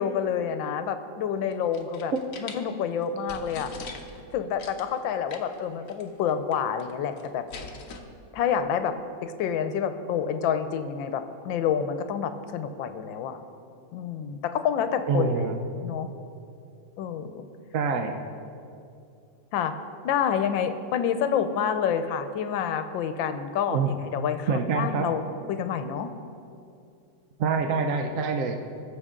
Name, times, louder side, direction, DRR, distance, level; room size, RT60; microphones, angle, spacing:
voice 1, 0.0-2.1 2.4-3.7 4.3-7.4 8.3-8.9 9.2-13.4 13.9-15.3 15.8-16.1 17.0-17.5 19.5-19.7 20.0-26.1, left 8 dB, 80° left, 9 dB, 1.4 m, -28 dB
sound 1, 1.5-2.6 3.0-3.1 3.3-4.2 4.6-4.9 5.3-5.6 5.9-6.0 6.3-6.9 7.2-8.0, left 5 dB, 55° left, 1.0 m, -41 dB
voice 2, 15.1-15.6 17.7-18.2 23.7-23.9 24.5-25.1 27.4-28.6, right 5 dB, 65° right, 5 dB, 0.8 m, -25 dB
19.5 x 7.1 x 3.7 m, 2.5 s
omnidirectional pair, 2.1 m